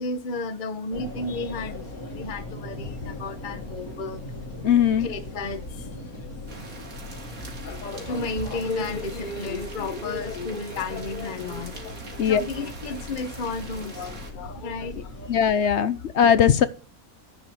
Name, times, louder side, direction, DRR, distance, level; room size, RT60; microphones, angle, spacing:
voice 1, 0.0-4.2 5.0-5.9 7.6-15.7 16.3-16.4, left 3 dB, 35° left, 1.2 m, -33 dB
sound 1, 0.9-15.5, left 1 dB, 85° left, 2.5 m, -39 dB
voice 2, 4.6-5.1 12.2-12.4 15.3-16.7, left 8 dB, 60° left, 0.9 m, -19 dB
sound 2, 6.5-14.3, right 3 dB, 75° right, 2.9 m, -43 dB
10.5 x 6.0 x 7.7 m
omnidirectional pair, 1.5 m